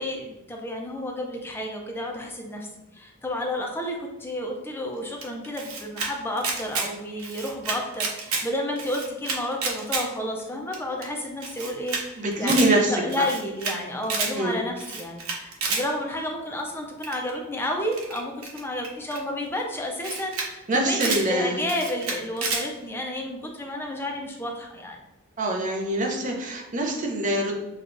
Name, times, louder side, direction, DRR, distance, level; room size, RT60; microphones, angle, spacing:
voice 1, 0.0-2.7 2.9-25.0, left 1 dB, 10° left, 1 dB, 0.5 m, -31 dB
Camera, 5.2-6.1 6.4-6.9 7.2-8.4 8.8-10.0 10.4-10.5 10.7-10.8 11.0-11.1 11.4-12.0 12.3-12.7 13.1-13.7 14.0-14.3 14.8-15.8 17.0-17.3 17.9-19.2 19.7-19.8 20.0-20.5 20.7-21.2 21.7-22.6, right 4 dB, 90° right, 0.8 m, -29 dB
voice 2, 12.2-13.2 14.3-14.5 20.7-21.6 25.4-27.5, right 1 dB, 35° right, 0 dB, 0.6 m, -24 dB
6.3 x 2.3 x 2.5 m, 0.97 s
head